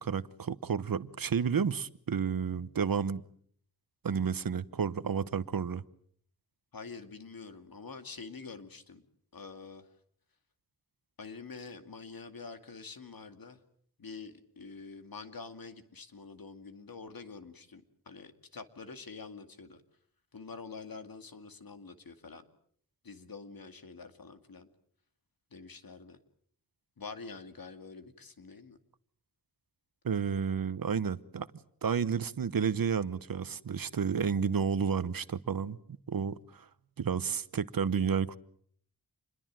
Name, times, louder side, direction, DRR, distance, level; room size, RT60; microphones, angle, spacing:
voice 1, 0.0-3.2 4.0-5.8 30.0-31.5 31.8-35.8 36.1-36.7 37.0-38.4, right 6 dB, 65° right, 1.0 m, -31 dB
voice 2, 6.7-9.0 9.3-9.9 11.2-13.6 14.0-19.8 20.3-22.4 23.0-24.7 25.5-26.2 27.0-28.8, left 4 dB, 70° left, 2.4 m, -46 dB
27.5 x 21.5 x 7.5 m
wide cardioid pair, 100°, 37 cm